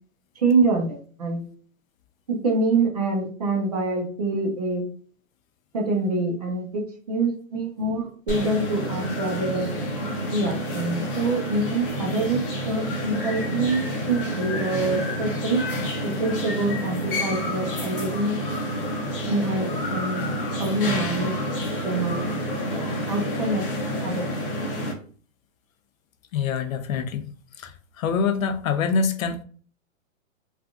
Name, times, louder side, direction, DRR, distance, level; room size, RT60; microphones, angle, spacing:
voice 1, 0.4-1.5 2.4-4.8 5.7-6.8 7.1-9.7 10.3-12.4 12.7-15.6 16.0-18.4 19.3-20.3 20.6-21.3 21.8-22.3 22.7-22.8 23.1-23.6 24.0-24.2, right 3 dB, 30° right, 0.6 m, -25 dB
sound 1, 8.3-24.9, equal, 45° left, 0.7 m, -29 dB
voice 2, 26.3-27.3 27.6-27.7 28.0-29.4, left 5 dB, 90° left, 0.7 m, -25 dB
3.4 x 2.4 x 2.4 m
hypercardioid pair, 175°, 39 cm